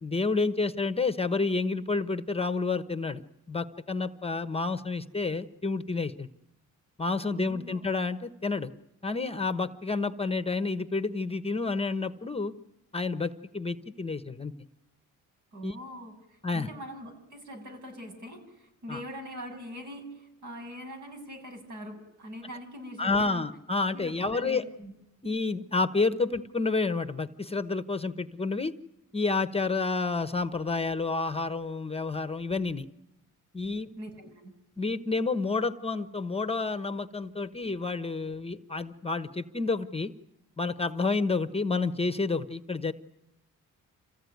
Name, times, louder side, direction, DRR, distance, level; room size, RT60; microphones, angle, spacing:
voice 1, 0.0-3.2 3.5-6.3 7.0-8.7 9.0-12.5 12.9-14.5 15.6-15.7 16.4-16.7 18.9-19.0 23.0-24.6 25.2-28.7 29.1-32.9 33.5-33.9 34.8-40.1 40.6-42.9, left 3 dB, 20° left, 11 dB, 1.0 m, -29 dB
voice 2, 7.3-7.8 15.5-23.5 23.9-24.9 34.0-34.5, equal, 60° right, 4 dB, 8.0 m, -43 dB
27.0 x 16.0 x 9.4 m, 0.91 s
cardioid pair, 90°, 33 cm